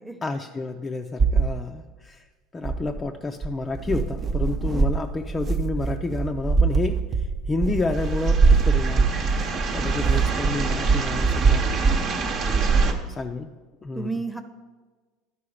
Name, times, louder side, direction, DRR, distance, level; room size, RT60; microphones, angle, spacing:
voice 1, 0.2-2.2 2.5-11.7 12.7-13.5 13.8-14.1, left 3 dB, 20° left, 3 dB, 0.5 m, -30 dB
sound 1, 1.2-1.5 2.7-3.0 3.4-12.1 12.5-12.9, right 4 dB, 35° right, 0.6 m, -24 dB
sound 2, 7.9-12.9, right 4 dB, 50° right, 1.0 m, -23 dB
voice 2, 12.0-13.2 13.9-14.4, right 3 dB, ahead, 8 dB, 0.8 m, -35 dB
11.5 x 4.7 x 4.9 m, 1.4 s
supercardioid pair, 100°, 0 cm